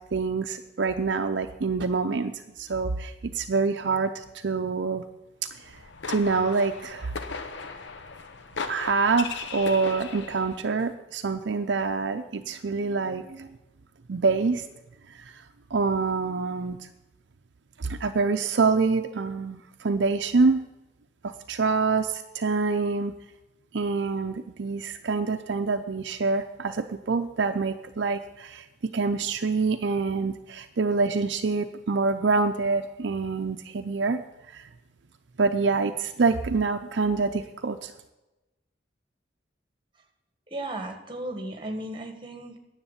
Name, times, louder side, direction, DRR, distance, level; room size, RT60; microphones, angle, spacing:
voice 1, 0.1-2.3 2.6-5.0 6.1-7.1 8.7-13.5 14.1-14.6 15.1-15.2 15.7-16.8 17.8-20.6 21.2-23.1 23.7-28.6 28.9-34.2 34.5-34.6 35.4-37.9, right 4 dB, 70° right, 7 dB, 0.6 m, -26 dB
sound 1, 5.6-10.7, left 4 dB, 70° left, 0.9 m, -37 dB
voice 2, 40.5-42.6, right 1 dB, 25° right, 5 dB, 1.5 m, -35 dB
9.9 x 7.4 x 9.0 m, 1.0 s
head